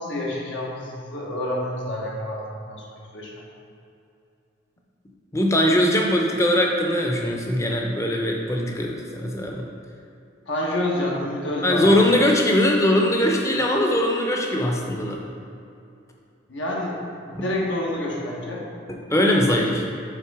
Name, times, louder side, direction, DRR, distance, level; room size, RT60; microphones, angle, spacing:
voice 1, 0.0-2.4 2.7-2.8 3.1-3.4 10.5-11.9 16.5-18.6, left 1 dB, 70° left, -3 dB, 1.2 m, -28 dB
voice 2, 5.3-9.6 11.6-15.2 17.3-17.4 18.9-19.9, left 1 dB, 15° left, 0 dB, 0.6 m, -21 dB
5.8 x 4.3 x 4.7 m, 2.6 s
head